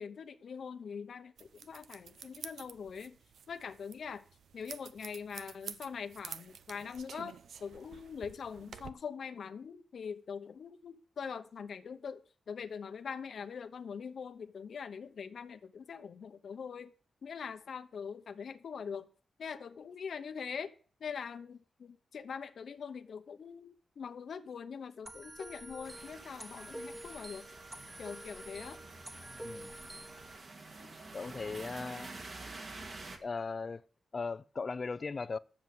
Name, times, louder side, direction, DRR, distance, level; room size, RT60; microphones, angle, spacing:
voice 1, 0.0-3.2 3.5-4.2 4.5-12.2 12.5-16.9 17.2-19.1 19.4-20.7 21.0-27.5 28.0-28.8, left 6 dB, 60° left, 0.9 m, -43 dB
sound 1, 1.4-8.9, right 7 dB, 80° right, 0.7 m, -50 dB
sound 2, 25.1-30.4, right 1 dB, 15° right, 1.3 m, -48 dB
sound 3, 25.8-33.2, right 3 dB, 40° right, 1.9 m, -49 dB
voice 2, 29.4-29.7 31.1-32.1 33.2-33.8 34.1-35.4, left 4 dB, 35° left, 0.4 m, -38 dB
10.5 x 7.2 x 7.7 m
wide cardioid pair, 170°, 0 cm